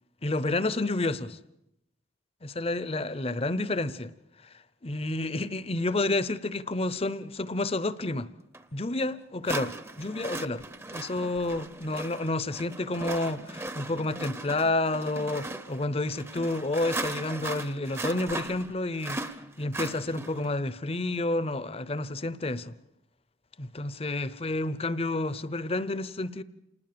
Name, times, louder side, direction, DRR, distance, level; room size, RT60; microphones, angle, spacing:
voice 1, 0.2-1.4 2.4-4.1 4.4-4.5 4.8-8.3 8.7-10.6 10.9-19.2 19.6-22.7 23.6-26.4, left 2 dB, 30° left, 0.8 m, -30 dB
sound 1, 8.5-8.6 9.4-20.5, right 2 dB, 15° right, 0.8 m, -38 dB
28.0 x 19.5 x 6.9 m
head